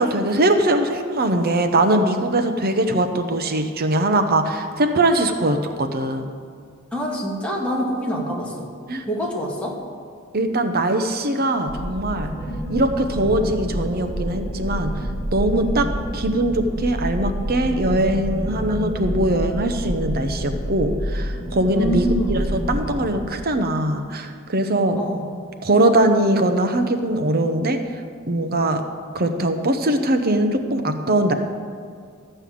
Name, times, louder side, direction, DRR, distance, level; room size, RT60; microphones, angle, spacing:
voice 1, 0.0-6.3 8.9-9.0 10.3-12.3 12.7-15.9 16.1-25.0 25.6-27.8 28.3-28.8 29.1-31.3, right 1 dB, 45° right, 7 dB, 0.9 m, -21 dB
voice 2, 6.9-8.7 9.1-9.8 21.7-22.5 24.9-25.3, equal, 5° left, -3 dB, 2.0 m, -25 dB
sound 1, 11.7-23.2, equal, 35° left, 3.0 m, -28 dB
13.5 x 5.5 x 8.6 m, 2.1 s
head